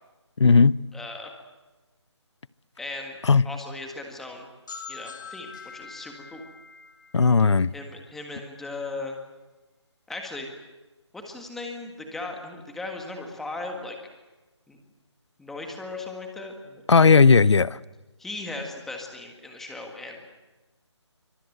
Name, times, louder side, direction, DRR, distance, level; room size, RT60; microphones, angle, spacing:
voice 1, 0.4-0.8 3.2-3.4 7.1-7.7 16.9-17.8, left 4 dB, 70° left, 20 dB, 0.8 m, -16 dB
voice 2, 0.9-1.3 2.8-3.2 3.4-4.5 4.9-6.4 7.7-9.2 10.1-10.5 11.1-14.0 14.7-14.8 15.4-16.8 18.2-20.2, left 2 dB, ahead, 2 dB, 1.7 m, -37 dB
sound 1, 4.7-8.3, left 5 dB, 40° left, 1.9 m, -44 dB
27.0 x 25.0 x 7.9 m, 1.2 s
figure-of-eight pair, 170°, 15 cm